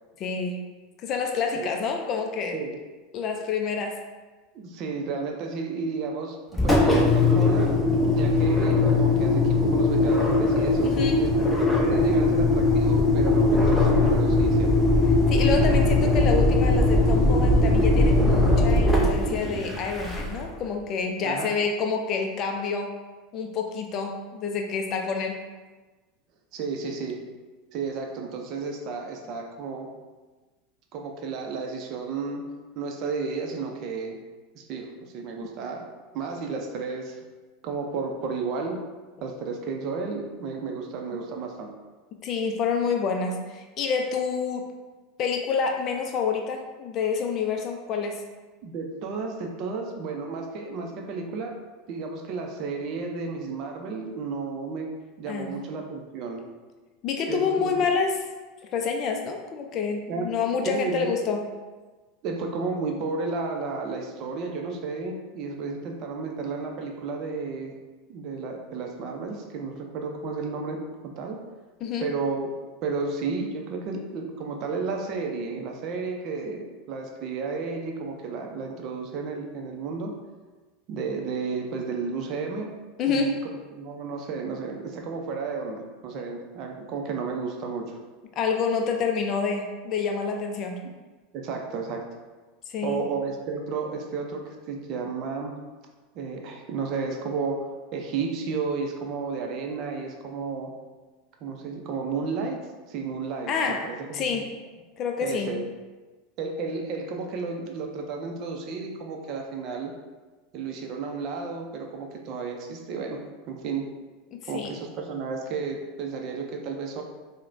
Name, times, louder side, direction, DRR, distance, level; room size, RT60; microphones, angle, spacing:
voice 1, 0.2-0.6 1.0-2.7 3.1-4.0 10.8-11.2 15.3-22.9 23.3-25.4 41.1-41.2 42.2-44.7 45.2-48.2 55.3-55.5 57.0-58.2 58.7-61.4 71.8-72.1 83.0-83.3 88.4-90.8 92.7-93.0 103.5-103.9 104.1-104.5 105.0-105.5 114.3-114.7, left 5 dB, 45° left, 3 dB, 0.3 m, -28 dB
voice 2, 4.5-7.7 8.1-11.3 11.8-14.7 21.2-21.5 26.5-27.2 27.7-29.9 30.9-32.5 32.8-34.2 34.5-35.8 36.1-37.2 37.6-38.8 39.2-41.7 48.6-51.5 51.9-54.9 55.2-56.4 57.3-57.8 60.1-60.3 60.6-61.3 62.2-67.7 68.1-71.4 72.0-72.5 72.8-80.1 80.9-82.7 83.1-88.0 90.8-90.9 91.3-92.0 92.8-95.5 96.1-100.7 101.4-104.4 105.2-105.7 106.4-109.9 110.5-113.9 114.5-117.0, right 4 dB, 50° right, 2 dB, 0.5 m, -32 dB
Engine, 6.5-20.5, left 2 dB, 10° left, 0.6 m, -20 dB
4.7 x 2.1 x 2.5 m, 1.3 s
hypercardioid pair, 85°, 0 cm